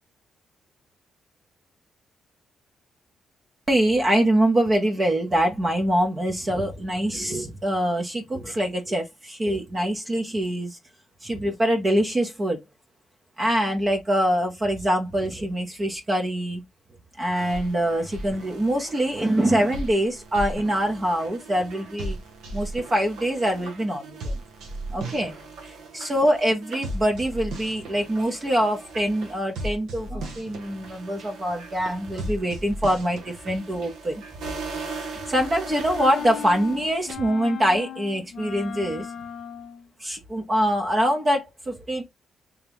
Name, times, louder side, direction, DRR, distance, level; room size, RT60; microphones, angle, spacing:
voice 1, 3.7-10.8 11.2-12.6 13.4-16.6 17.2-22.2 22.5-24.3 24.9-25.3 25.9-34.2 35.3-39.1 40.0-42.0, equal, 25° right, 0.7 m, -24 dB
sound 1, 17.4-37.1, right 2 dB, 90° right, 1.0 m, -37 dB
sound 2, 36.0-39.9, left 9 dB, 55° left, 0.5 m, -36 dB
3.5 x 2.8 x 3.4 m
cardioid pair, 120°, 0 cm